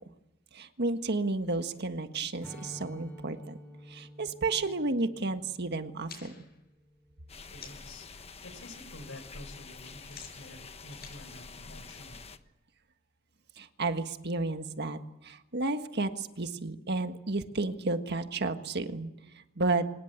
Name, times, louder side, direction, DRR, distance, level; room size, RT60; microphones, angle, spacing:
voice 1, 0.5-3.6 3.9-6.5 13.6-19.1 19.6-19.9, right 3 dB, 55° right, 8 dB, 1.6 m, -32 dB
Strum, 2.4-7.8, equal, 5° left, 7.2 m, -50 dB
sound 1, 6.1-8.0 8.4-8.8 9.1-12.3, left 6 dB, 50° left, 6.9 m, -52 dB
sound 2, 7.3-12.4, left 4 dB, 30° left, 1.2 m, -47 dB
voice 2, 7.5-12.2, left 1 dB, 75° left, 11 dB, 4.6 m, -49 dB
25.0 x 20.0 x 8.2 m, 0.92 s
head